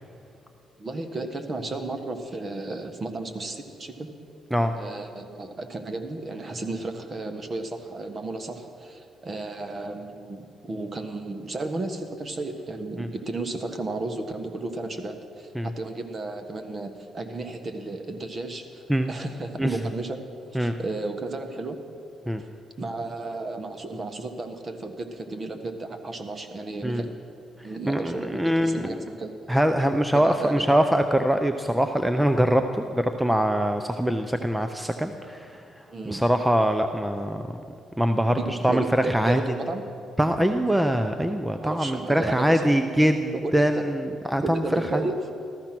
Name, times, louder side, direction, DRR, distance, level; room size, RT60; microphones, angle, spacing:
voice 1, 0.8-4.1 4.7-20.2 20.6-21.8 22.4-22.5 22.8-27.2 27.6-29.3 30.2-30.7 35.9-36.2 38.3-39.8 41.6-42.7 43.3-43.9 44.4-45.2, right 2 dB, 35° right, 7 dB, 1.4 m, -33 dB
voice 2, 27.9-29.0 29.5-35.6 36.1-37.6 38.0-39.4 40.2-44.6 44.9-45.0, equal, 5° right, 7 dB, 0.6 m, -23 dB
14.5 x 14.0 x 6.0 m, 2.6 s
cardioid pair, 90°, 0 cm